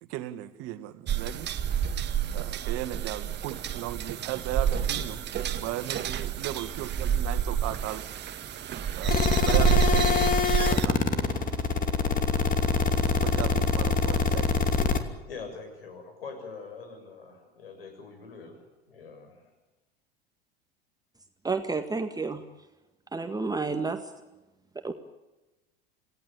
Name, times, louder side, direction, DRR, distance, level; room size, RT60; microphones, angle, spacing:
voice 1, 0.0-1.5 2.3-5.2 5.6-8.0 9.0-11.0 12.9-14.7, right 14 dB, 50° right, 10 dB, 2.2 m, -36 dB
sound 1, 1.1-10.9, right 9 dB, 35° right, 1.9 m, -29 dB
sound 2, 9.1-15.0, left 5 dB, 30° left, 2.7 m, -24 dB
voice 2, 15.3-19.5, left 4 dB, 75° left, 6 dB, 7.1 m, -44 dB
voice 3, 21.4-22.4 23.1-24.0 24.8-24.9, right 4 dB, 15° right, 6 dB, 1.8 m, -30 dB
28.0 x 17.5 x 8.5 m, 1.1 s
figure-of-eight pair, 80°, 30 cm